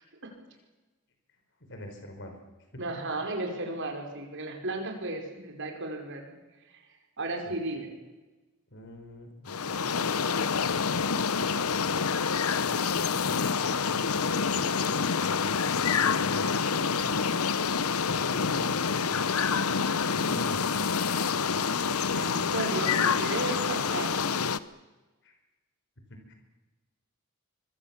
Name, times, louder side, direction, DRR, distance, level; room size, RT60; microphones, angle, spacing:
voice 1, 1.7-2.4 2.7-2.8 7.5-7.6 8.7-10.0 15.1-16.5 18.1-19.3 20.1-21.1 25.2-25.3 26.1-26.3, equal, 55° left, 4 dB, 5.3 m, -45 dB
voice 2, 2.8-6.4 6.7-6.8 7.2-7.9 22.1-24.2, right 2 dB, 60° right, 3 dB, 5.3 m, -34 dB
sound 1, 9.5-24.6, left 5 dB, 85° left, 0.9 m, -27 dB
25.0 x 22.5 x 7.4 m, 1.2 s
head